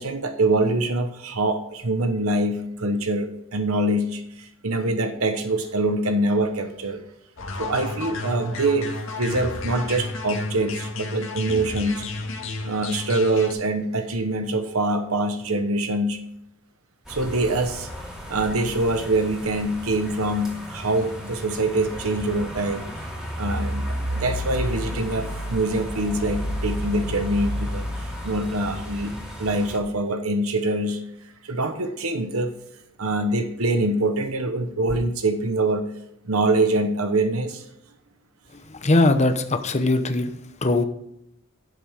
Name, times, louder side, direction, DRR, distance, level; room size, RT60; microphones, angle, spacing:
voice 1, 0.0-7.0 7.6-12.0 12.6-16.2 17.1-17.9 18.3-22.9 23.4-31.0 31.4-32.5 33.0-35.9 36.2-37.6, right 2 dB, 85° right, 7 dB, 1.1 m, -24 dB
sound 1, 7.4-13.5, left 3 dB, 65° left, 1.8 m, -32 dB
sound 2, 17.0-29.8, equal, 5° right, 2.4 m, -32 dB
voice 2, 38.5-40.3 40.6-40.8, left 2 dB, 30° left, 8 dB, 0.9 m, -21 dB
11.5 x 7.6 x 3.6 m, 0.79 s
head